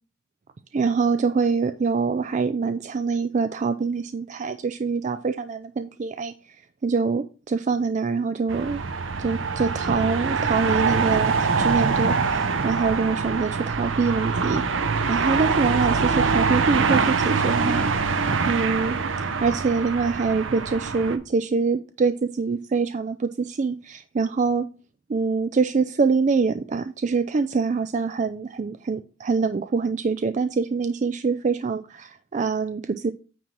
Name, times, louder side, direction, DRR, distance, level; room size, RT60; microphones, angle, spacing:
voice 1, 0.7-8.8 9.2-14.6 15.1-17.8 18.5-19.0 19.4-24.7 25.1-33.1, right 4 dB, 40° right, 10 dB, 0.4 m, -25 dB
sound 1, 8.5-21.2, right 4 dB, 75° right, 0.8 m, -24 dB
9.1 x 3.1 x 5.9 m, 0.35 s
head